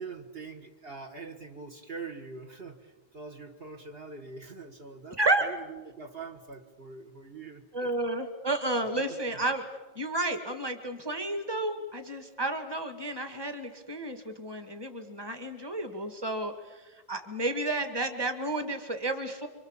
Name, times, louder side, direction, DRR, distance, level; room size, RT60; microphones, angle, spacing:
voice 1, 0.0-7.9, right 4 dB, 55° right, 3 dB, 1.8 m, -43 dB
voice 2, 7.7-9.6 10.0-19.5, right 2 dB, 20° right, 7 dB, 2.0 m, -31 dB
26.5 x 25.5 x 7.4 m, 1.2 s
omnidirectional pair, 1.2 m